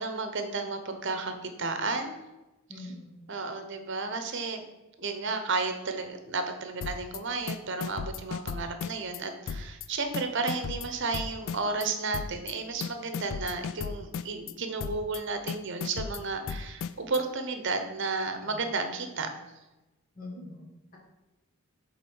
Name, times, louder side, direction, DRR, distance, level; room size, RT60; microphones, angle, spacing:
voice 1, 0.0-2.1 2.8-2.9 3.3-4.6 5.0-19.3, right 3 dB, 55° right, 7 dB, 0.9 m, -32 dB
voice 2, 2.7-3.2 20.2-21.0, left 2 dB, 40° left, -2 dB, 1.6 m, -43 dB
sound 1, 6.8-7.2 7.5-9.2 9.5-9.9 10.1-11.9 12.1-12.5 12.8-14.5 14.8-15.2 15.5-17.2, left 6 dB, 60° left, 0.3 m, -35 dB
8.1 x 3.7 x 5.4 m, 1.0 s
head